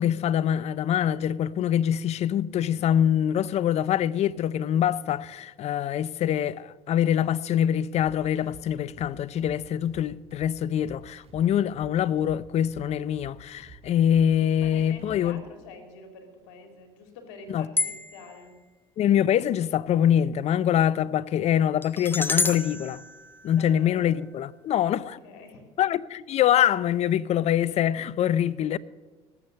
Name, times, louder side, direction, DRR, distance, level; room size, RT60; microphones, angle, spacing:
voice 1, 0.0-15.4 17.5-17.7 19.0-23.0 23.4-25.2 25.8-28.8, left 10 dB, 50° left, 0.5 m, -24 dB
sound 1, 8.0-15.5, right 4 dB, 45° right, 5.4 m, -51 dB
voice 2, 14.6-18.5 23.5-24.2 24.9-25.7, left 4 dB, 85° left, 2.4 m, -46 dB
sound 2, 17.8-18.4 21.8-24.1, left 3 dB, 15° left, 0.8 m, -30 dB
18.0 x 7.3 x 6.5 m
supercardioid pair, 75°, 14 cm